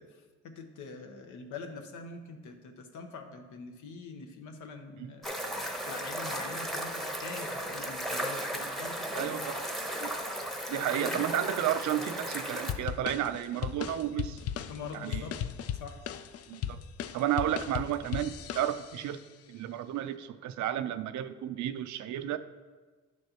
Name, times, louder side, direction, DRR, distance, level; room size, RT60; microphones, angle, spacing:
voice 1, 0.0-9.5 10.7-11.3 14.7-15.3 15.7-16.2 17.4-17.5, left 4 dB, 80° left, 5 dB, 1.0 m, -44 dB
sound 1, 5.2-12.7, equal, ahead, 0.9 m, -35 dB
voice 2, 9.1-9.7 10.0-10.1 10.7-14.4 15.0-15.2 16.5-16.8 17.1-19.2 19.5-22.4, right 11 dB, 70° right, 11 dB, 0.5 m, -32 dB
sound 2, 12.7-19.1, left 10 dB, 55° left, 0.4 m, -37 dB
10.0 x 6.3 x 2.9 m, 1.3 s
cardioid pair, 90°, 30 cm